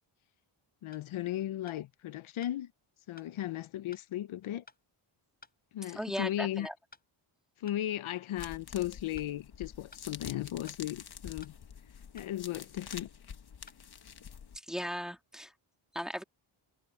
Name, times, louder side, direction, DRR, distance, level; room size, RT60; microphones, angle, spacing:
voice 1, 0.8-2.7 3.1-4.6 5.7-6.7 7.6-11.5 12.1-13.1, left 13 dB, 75° left, 0.7 m, -36 dB
sound 1, 0.9-1.1 1.7-1.8 2.4-2.6 3.2-3.3 3.9-4.1 4.7-4.8 5.4-5.6 6.2-6.3 6.9-7.1 7.7-7.8 8.4-8.6 9.2-9.3 9.9-10.1 10.7-10.8 11.4-11.6 12.2-12.3 12.9-13.1 13.7-13.8, left 3 dB, 20° left, 3.7 m, -55 dB
voice 2, 5.9-6.7 14.7-15.5 15.9-16.2, equal, ahead, 2.2 m, -37 dB
sound 2, 8.4-14.6, left 7 dB, 50° left, 1.5 m, -47 dB
wide cardioid pair, 140°, 49 cm